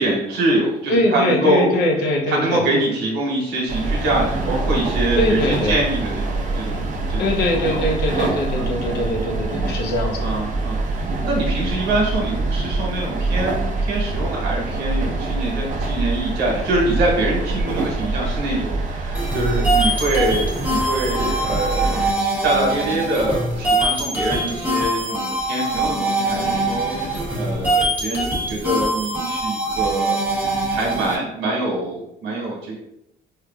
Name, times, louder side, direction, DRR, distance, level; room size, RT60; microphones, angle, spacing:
voice 1, 0.0-1.6 2.3-7.3 7.5-7.8 8.1-8.7 10.2-30.2 30.7-32.8, right 2 dB, 80° right, -1 dB, 1.2 m, -24 dB
voice 2, 0.9-2.6 5.1-5.8 7.2-10.4, left 1 dB, 70° left, 1 dB, 0.8 m, -22 dB
sound 1, 3.7-22.1, right 2 dB, 50° right, 0.7 m, -25 dB
sound 2, 19.1-31.1, right 1 dB, 10° right, 1.0 m, -23 dB
4.4 x 2.4 x 2.4 m, 0.80 s
cardioid pair, 110°, 17 cm